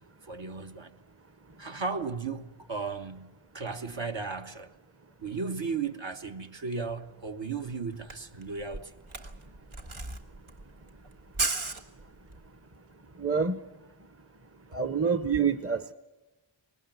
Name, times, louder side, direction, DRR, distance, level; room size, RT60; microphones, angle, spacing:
voice 1, 0.2-1.0 1.6-4.7 5.2-8.9, right 4 dB, 65° right, 1.5 m, -35 dB
Camera, 7.6-7.7 7.9-12.5, right 3 dB, 85° right, 1.5 m, -35 dB
voice 2, 13.2-13.6 14.7-15.9, right 6 dB, 30° right, 0.9 m, -27 dB
21.0 x 18.5 x 9.3 m
wide cardioid pair, 60°, 48 cm